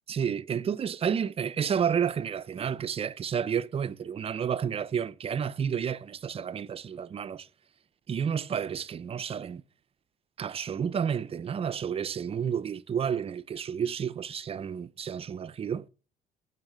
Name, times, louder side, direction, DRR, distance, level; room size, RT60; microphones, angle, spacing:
voice 1, 0.1-7.5 8.1-9.6 10.4-15.9, right 7 dB, 35° right, 0.6 m, -31 dB
16.5 x 5.7 x 7.8 m
cardioid pair, 110°, 17 cm